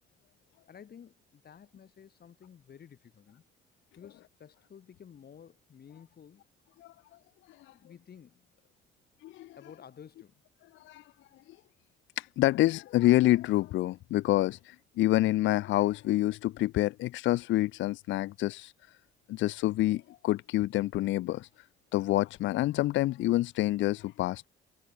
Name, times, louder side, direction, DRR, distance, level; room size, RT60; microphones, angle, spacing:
voice 1, 0.7-3.4 4.0-6.4 7.7-8.6 9.6-10.4, left 8 dB, 50° left, 5.6 m, -53 dB
voice 2, 9.2-9.5 10.8-11.0 12.2-18.7 19.3-21.5 21.9-24.5, left 16 dB, 70° left, 0.5 m, -27 dB
cardioid pair, 85°, 20 cm